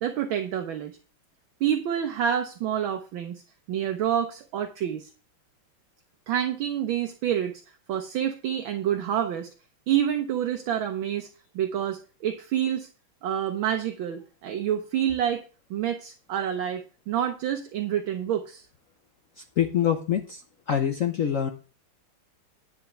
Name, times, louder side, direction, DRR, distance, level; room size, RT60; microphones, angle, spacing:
voice 1, 0.0-0.9 1.6-3.4 3.7-5.1 6.3-7.5 7.9-9.5 9.9-11.3 11.5-12.9 13.2-15.4 15.7-18.6, right 10 dB, 70° right, 6 dB, 1.6 m, -28 dB
voice 2, 19.6-20.4 20.7-21.5, left 9 dB, 65° left, 6 dB, 0.8 m, -25 dB
10.0 x 4.6 x 6.8 m, 0.36 s
omnidirectional pair, 2.3 m